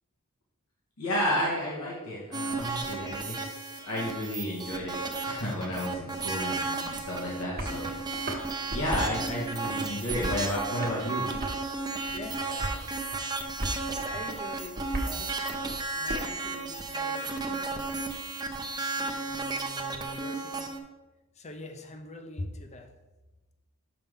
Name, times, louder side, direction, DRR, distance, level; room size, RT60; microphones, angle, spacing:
voice 1, 1.0-5.0 5.3-8.1 8.7-11.3, equal, 85° left, -5 dB, 1.6 m, -32 dB
sound 1, 2.3-20.8, right 3 dB, 20° right, 0.6 m, -34 dB
sound 2, 7.5-7.8 8.1-9.1 9.5-10.5 10.8-11.7 12.1-12.8 13.1-13.8 14.1-16.1, right 1 dB, 45° right, 1.2 m, -35 dB
voice 2, 12.1-13.0 13.4-18.3 19.0-20.7 21.3-23.0, left 2 dB, 30° left, 6 dB, 0.7 m, -44 dB
6.7 x 5.8 x 3.7 m, 1.1 s
head